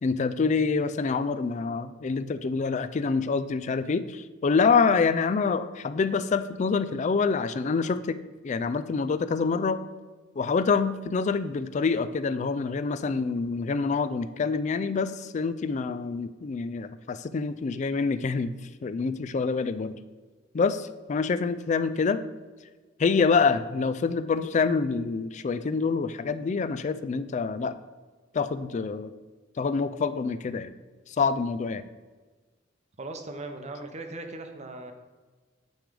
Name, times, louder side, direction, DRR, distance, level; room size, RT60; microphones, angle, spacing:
voice 1, 0.0-8.2 8.4-9.8 10.4-18.5 18.8-20.0 20.5-22.2 23.0-27.8 28.3-29.1 29.6-30.7 31.1-31.8, left 4 dB, 40° left, 12 dB, 0.3 m, -26 dB
voice 2, 33.0-34.9, right 2 dB, 35° right, 6 dB, 0.7 m, -38 dB
9.3 x 3.3 x 5.1 m, 1.3 s
head